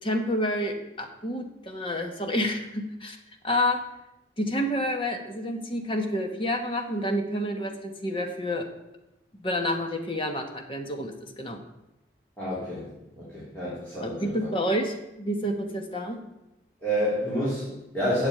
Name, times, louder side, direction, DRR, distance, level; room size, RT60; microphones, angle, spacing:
voice 1, 0.0-3.2 3.4-3.8 4.4-8.7 9.4-11.6 14.0-16.2, left 1 dB, 30° left, 4 dB, 1.3 m, -29 dB
voice 2, 12.4-12.9 13.2-14.3 16.8-18.3, equal, 10° left, -10 dB, 3.6 m, -29 dB
8.0 x 7.3 x 8.7 m, 0.92 s
head